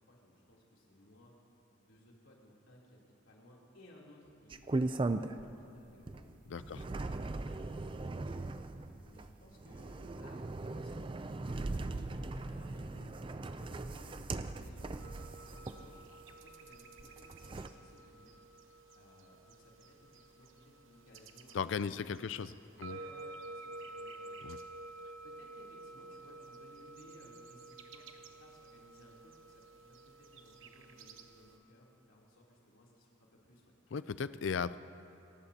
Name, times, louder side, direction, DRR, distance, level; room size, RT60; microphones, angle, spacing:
voice 1, 0.1-1.3 1.7-6.3 6.6-6.8 7.3-8.4 8.9-16.0 16.3-18.4 18.9-19.7 20.0-20.5 20.8-22.4 22.8-24.5 24.8-33.6, left 1 dB, 85° left, -4 dB, 3.2 m, -60 dB
sound 1, 4.5-5.6 6.1-16.3 17.0-17.7, right 2 dB, 25° right, 0.4 m, -39 dB
voice 2, 6.5-6.8 21.5-22.5 22.8-23.0 24.4-24.6 33.9-34.8, left 6 dB, 65° left, 14 dB, 0.4 m, -36 dB
sound 2, 15.0-31.6, right 2 dB, 80° right, 1.0 m, -51 dB
28.5 x 15.0 x 2.8 m, 2.7 s
head